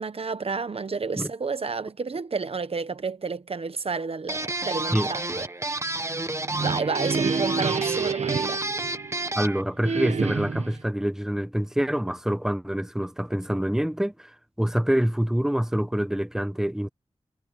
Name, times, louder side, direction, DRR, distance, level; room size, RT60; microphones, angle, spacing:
voice 1, 0.0-5.4 6.6-8.6, right 4 dB, 60° right, 1.1 m, -30 dB
sound 1, 4.3-9.6, right 2 dB, 25° right, 1.3 m, -30 dB
sound 2, 6.3-9.4 9.8-10.8, right 5 dB, 85° right, 1.4 m, -29 dB
voice 2, 9.4-16.9, equal, 5° right, 1.2 m, -26 dB
wide cardioid pair, 85°, 11 cm